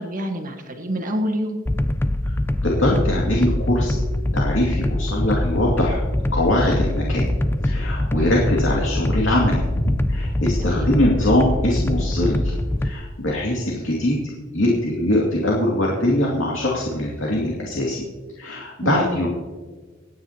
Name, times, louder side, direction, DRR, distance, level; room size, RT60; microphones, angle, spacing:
voice 1, 0.0-1.6 8.1-8.4 10.6-11.0 18.8-19.0, equal, 40° right, 4 dB, 1.6 m, -27 dB
sound 1, 1.7-12.9, left 1 dB, 10° left, 0.3 m, -23 dB
voice 2, 2.6-3.9 4.3-6.0 6.3-7.3 7.6-12.5 12.8-14.2 14.5-18.0 18.4-19.3, left 1 dB, 65° left, -3 dB, 2.5 m, -22 dB
26.0 x 9.6 x 2.9 m, 1.4 s
head